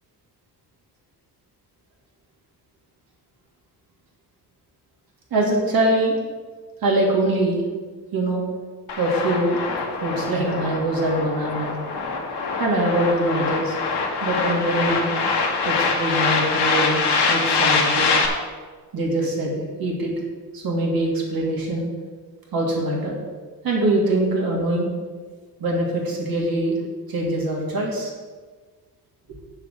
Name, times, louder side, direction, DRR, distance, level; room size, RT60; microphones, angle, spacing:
voice 1, 5.3-6.1 6.8-7.6 8.1-8.4 9.0-9.6 10.0-11.7 12.6-13.7 14.2-15.1 15.6-18.1 18.9-20.1 20.5-21.9 22.5-23.1 23.6-24.9 25.6-26.8 27.1-28.1, right 1 dB, 60° right, -2 dB, 2.8 m, -23 dB
sound 1, 8.9-18.3, left 4 dB, 85° left, 1.7 m, -24 dB
8.1 x 6.4 x 6.7 m, 1.4 s
wide cardioid pair, 140°, 39 cm